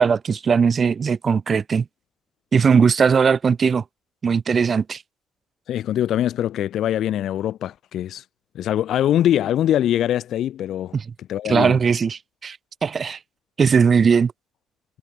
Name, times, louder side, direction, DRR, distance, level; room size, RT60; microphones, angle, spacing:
voice 1, 0.0-1.8 2.5-3.8 4.2-5.0 10.9-11.0 11.4-12.6 12.8-13.2 13.6-14.3, right 6 dB, 45° right, 0.7 m, -19 dB
voice 2, 5.7-8.2 8.5-11.0 11.3-11.8, left 11 dB, 75° left, 3.5 m, -22 dB
cardioid pair, 90°, 0 cm